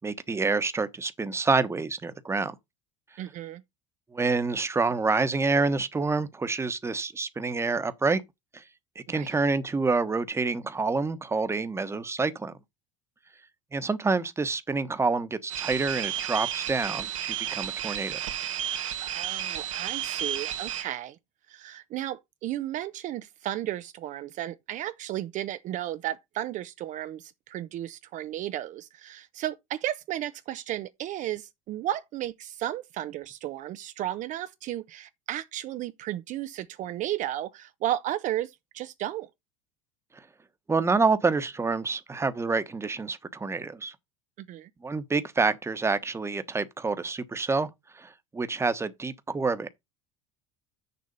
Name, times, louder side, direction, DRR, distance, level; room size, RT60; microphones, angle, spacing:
voice 1, 0.0-2.5 4.1-8.2 8.5-8.6 8.9-12.5 13.7-18.2 40.7-43.9 44.8-47.7 47.9-49.7, right 4 dB, 15° right, 1.1 m, -27 dB
voice 2, 3.2-3.6 9.1-9.3 19.0-21.2 21.5-39.3 44.4-44.7, right 13 dB, 50° right, 0.7 m, -34 dB
sound 1, 15.5-20.8, right 10 dB, 90° right, 1.9 m, -32 dB
6.9 x 6.0 x 5.3 m
hypercardioid pair, 85°, 16 cm